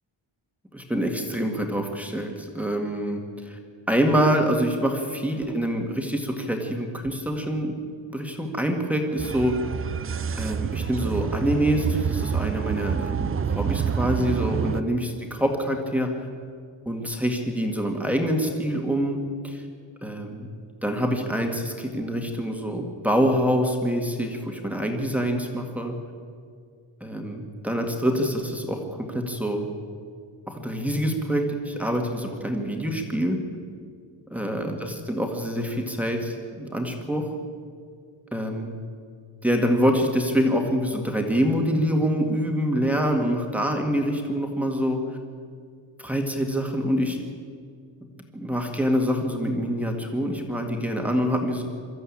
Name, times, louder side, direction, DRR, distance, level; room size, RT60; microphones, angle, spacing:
voice 1, 0.7-3.6 3.9-7.7 8.1-9.6 10.4-16.1 16.9-19.2 19.4-19.6 20.0-20.5 20.8-25.9 27.0-29.7 30.5-33.4 34.3-37.2 38.3-38.8 39.4-45.0 46.0-47.2 48.3-51.6, equal, 5° right, 2 dB, 2.0 m, -25 dB
sound 1, 9.2-14.8, right 7 dB, 30° right, 0.4 m, -27 dB
24.0 x 14.0 x 8.7 m, 2.1 s
wide cardioid pair, 170°, 49 cm